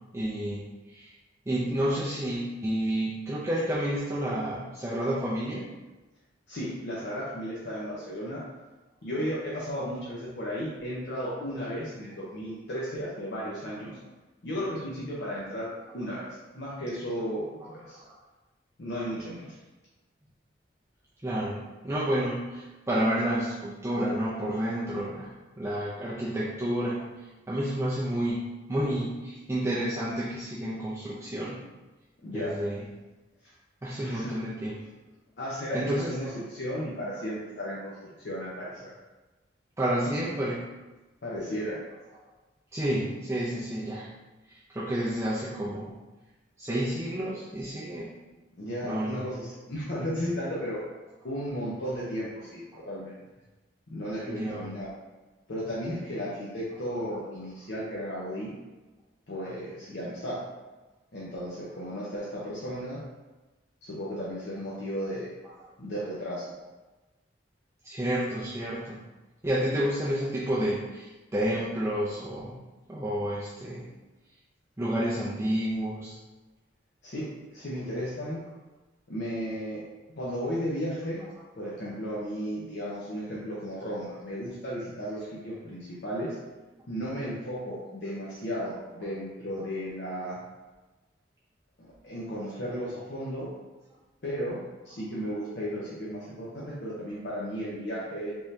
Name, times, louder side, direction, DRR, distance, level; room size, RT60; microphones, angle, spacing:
voice 1, 0.1-1.1 1.5-5.7 17.9-18.1 21.2-21.6 21.8-25.3 25.6-27.0 27.5-31.6 32.3-32.9 33.8-34.8 35.7-36.4 39.8-40.6 42.7-44.1 44.5-45.9 46.6-48.1 48.8-49.3 52.7-52.9 54.3-54.7 67.8-69.0 69.4-72.5 72.9-73.9 74.8-76.2, right 1 dB, 15° right, -8 dB, 0.4 m, -30 dB
voice 2, 6.5-8.4 9.0-14.0 14.4-16.2 16.5-18.0 18.8-19.6 32.2-32.5 34.0-34.4 35.4-38.9 41.2-41.8 48.6-50.8 51.2-53.1 53.9-54.9 55.5-58.5 59.3-60.4 61.1-63.0 63.8-65.3 65.8-66.5 77.0-78.4 79.1-79.8 80.2-81.2 81.6-86.4 86.9-90.4 91.8-93.5 94.2-98.3, equal, 65° left, -7 dB, 0.7 m, -34 dB
3.5 x 2.7 x 3.2 m, 1.2 s
head